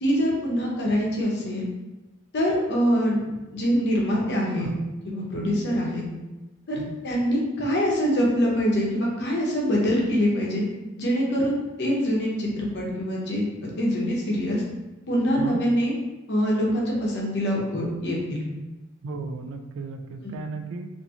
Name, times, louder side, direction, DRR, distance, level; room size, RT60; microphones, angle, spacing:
voice 1, 0.0-1.6 2.3-4.7 5.0-6.0 6.7-10.6 11.0-13.5 13.8-14.6 15.1-15.9 16.3-18.5 20.2-20.3, equal, 60° left, -3 dB, 0.7 m, -24 dB
voice 2, 19.0-20.9, right 3 dB, 70° right, 4 dB, 0.3 m, -35 dB
2.7 x 2.6 x 2.3 m, 1.1 s
head